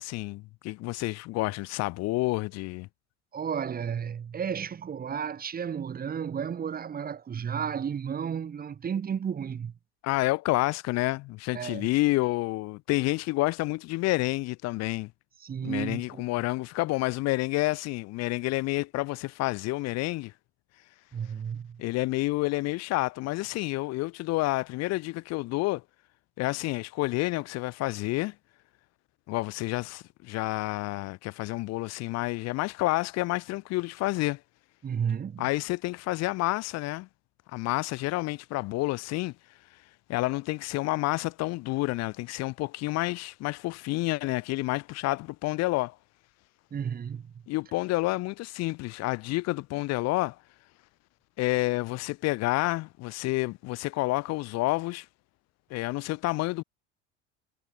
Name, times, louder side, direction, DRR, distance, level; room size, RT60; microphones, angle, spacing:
voice 1, 0.0-2.9 10.0-15.1 15.6-20.3 21.8-25.8 26.4-28.3 29.3-34.4 35.4-37.1 37.5-39.3 40.1-46.0 47.5-50.4 51.4-55.1 55.7-56.6, left 20 dB, 45° left, 1.3 m, -29 dB
voice 2, 3.3-9.7 11.5-11.9 15.4-16.2 21.1-21.8 34.8-35.4 46.7-47.3, right 7 dB, 25° right, 1.7 m, -33 dB
figure-of-eight pair, 75°, 35 cm